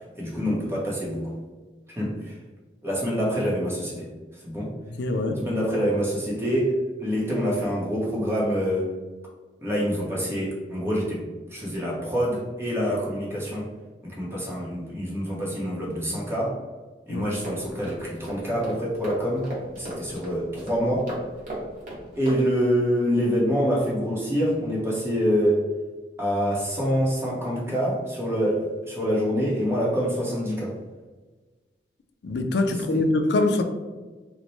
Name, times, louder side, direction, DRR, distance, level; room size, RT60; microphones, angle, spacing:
voice 1, 0.1-1.3 1.9-2.4 2.8-4.7 5.4-8.9 9.6-13.7 14.0-16.6 17.1-21.1 22.1-25.6 26.2-30.7 32.7-33.0, equal, 15° right, -4 dB, 0.8 m, -26 dB
voice 2, 5.0-5.4 17.1-17.3 32.2-33.6, left 2 dB, 75° left, 6 dB, 0.4 m, -23 dB
sound 1, 17.4-22.4, right 1 dB, 45° right, 1.0 m, -37 dB
4.1 x 2.1 x 3.1 m, 1.3 s
head